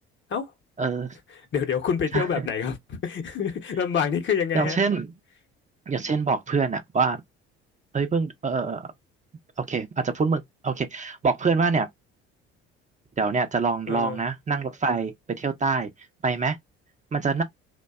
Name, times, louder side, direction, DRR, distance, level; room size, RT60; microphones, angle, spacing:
voice 1, 0.8-1.2 2.1-2.2 4.5-5.1 5.9-7.2 7.9-8.9 9.6-11.9 13.2-15.9 16.2-16.6 17.1-17.4, right 4 dB, 25° right, 0.6 m, -25 dB
voice 2, 1.3-4.8 13.9-14.2, left 7 dB, 40° left, 0.8 m, -27 dB
2.5 x 2.2 x 2.3 m
hypercardioid pair, 65°, 29 cm